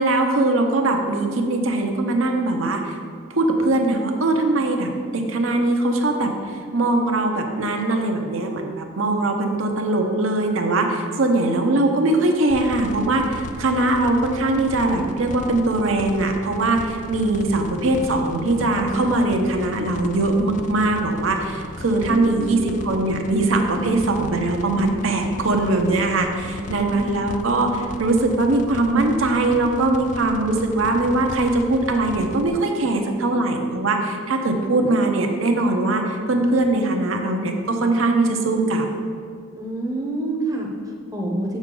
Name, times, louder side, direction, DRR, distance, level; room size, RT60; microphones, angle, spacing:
voice 1, 0.0-3.0 3.3-38.9, right 2 dB, 80° right, 3 dB, 0.8 m, -21 dB
sound 1, 12.5-32.5, left 2 dB, 40° left, 0.4 m, -36 dB
voice 2, 22.1-22.6 23.8-23.9 26.5-27.2 39.5-41.6, right 2 dB, 15° right, -1 dB, 0.8 m, -29 dB
7.3 x 6.4 x 3.8 m, 2.2 s
head